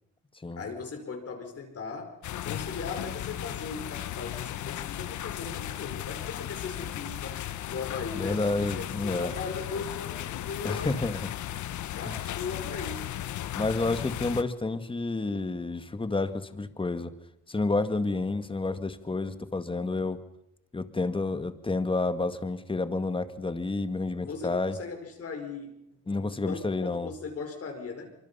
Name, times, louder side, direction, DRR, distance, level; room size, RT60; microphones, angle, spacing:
voice 1, 0.6-7.4 7.7-11.0 12.0-13.1 24.2-25.8 26.1-28.1, left 5 dB, 50° left, 4 dB, 5.3 m, -38 dB
sound 1, 2.2-14.4, left 12 dB, 75° left, 1.2 m, -36 dB
voice 2, 8.2-9.3 10.6-11.2 13.5-17.1 17.5-20.2 20.7-24.8 26.1-27.1, left 3 dB, 15° left, 10 dB, 1.9 m, -30 dB
25.0 x 24.5 x 5.6 m, 0.81 s
cardioid pair, 90°, 30 cm